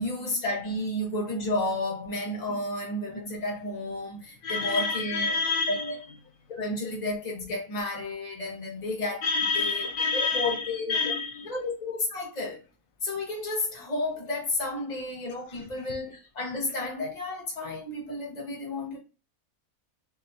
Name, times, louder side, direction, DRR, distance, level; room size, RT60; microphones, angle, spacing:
voice 1, 0.0-5.3 5.7-6.0 6.5-9.2 9.6-9.9 10.1-11.0 11.5-12.6 13.0-19.0, left 2 dB, 30° left, 1.3 m, -32 dB
voice 2, 4.4-6.0 9.2-11.5 15.5-15.6, left 4 dB, 75° left, 1.2 m, -28 dB
4.0 x 3.0 x 2.7 m
omnidirectional pair, 1.6 m